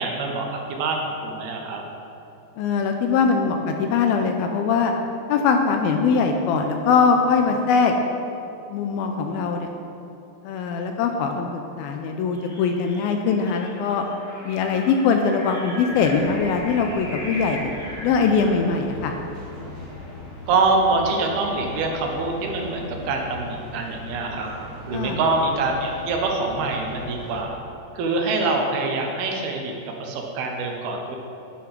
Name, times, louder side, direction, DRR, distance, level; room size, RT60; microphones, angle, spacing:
voice 1, 0.0-1.8 20.5-24.5 24.9-27.6 27.9-29.7 30.0-31.2, right 3 dB, 75° right, 2 dB, 2.8 m, -25 dB
voice 2, 2.6-4.9 5.3-7.9 8.7-9.7 10.4-14.1 14.5-17.7 18.0-19.1 24.9-25.2, left 5 dB, 85° left, 4 dB, 2.2 m, -21 dB
sound 1, 12.3-18.7, equal, 15° left, 0.6 m, -38 dB
sound 2, 15.9-27.4, left 2 dB, 45° left, 0.8 m, -39 dB
10.5 x 6.0 x 5.9 m, 2.9 s
omnidirectional pair, 4.8 m